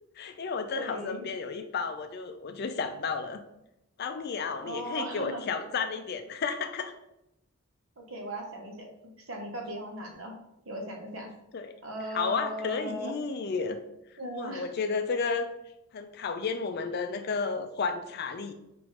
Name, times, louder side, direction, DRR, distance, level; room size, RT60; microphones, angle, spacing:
voice 1, 0.2-3.4 4.0-6.9 11.5-11.7 12.1-13.8 14.3-15.5 15.9-18.5, left 5 dB, 45° left, 8 dB, 0.4 m, -32 dB
voice 2, 0.7-1.3 4.5-5.6 8.0-10.3 10.6-11.3 11.8-13.2 14.2-14.7, right 1 dB, 65° right, 1 dB, 0.9 m, -38 dB
4.9 x 2.6 x 3.2 m, 0.84 s
head